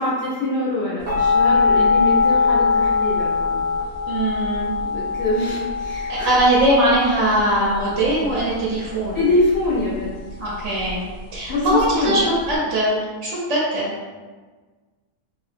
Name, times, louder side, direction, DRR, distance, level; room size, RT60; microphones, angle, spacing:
voice 1, 0.0-3.6 4.8-6.3 9.1-10.1 11.5-12.2, left 2 dB, 60° left, -7 dB, 0.7 m, -24 dB
sound 1, 1.1-12.6, left 4 dB, 35° right, 0.7 m, -22 dB
voice 2, 4.1-4.7 6.1-9.2 10.4-11.0 11.3-13.9, right 1 dB, 65° right, -6 dB, 1.0 m, -20 dB
2.8 x 2.7 x 2.4 m, 1.4 s
omnidirectional pair, 1.5 m